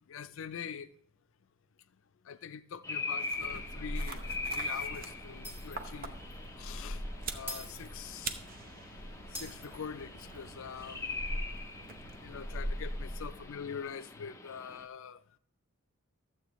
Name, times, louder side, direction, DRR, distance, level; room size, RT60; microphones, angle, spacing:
voice 1, 0.1-0.9 2.2-6.3 6.6-7.0 7.3-8.4 9.3-11.4 12.2-15.2, left 7 dB, 65° left, 0.4 m, -44 dB
sound 1, 2.8-14.8, left 3 dB, 15° left, 0.5 m, -42 dB
sound 2, 3.2-13.6, right 1 dB, 45° right, 0.7 m, -41 dB
Shatter, 5.4-6.0 6.3-6.5 7.5-8.5 9.3-10.4, left 1 dB, 10° right, 2.4 m, -45 dB
13.0 x 7.8 x 3.0 m
head